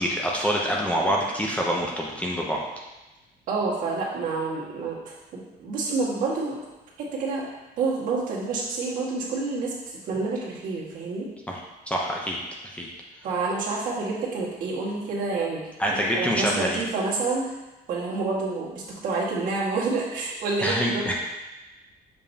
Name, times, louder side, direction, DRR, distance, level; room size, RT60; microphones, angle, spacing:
voice 1, 0.0-2.6 11.5-11.6 11.9-12.4 12.7-12.9 15.8-16.8 20.6-21.1, equal, 10° left, -2 dB, 0.6 m, -26 dB
voice 2, 3.5-6.6 7.0-7.4 7.8-11.3 13.2-17.4 17.9-21.1, right 3 dB, 55° right, -5 dB, 1.7 m, -28 dB
6.9 x 5.3 x 2.8 m, 1.0 s
cardioid pair, 170°, 17 cm